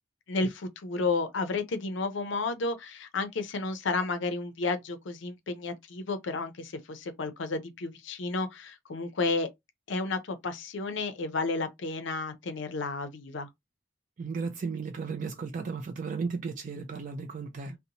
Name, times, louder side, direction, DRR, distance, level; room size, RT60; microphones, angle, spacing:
voice 1, 0.3-9.5 9.9-13.5, left 3 dB, 70° left, 0.5 m, -32 dB
voice 2, 14.2-17.8, right 4 dB, 40° right, 0.3 m, -35 dB
2.8 x 2.1 x 2.6 m
head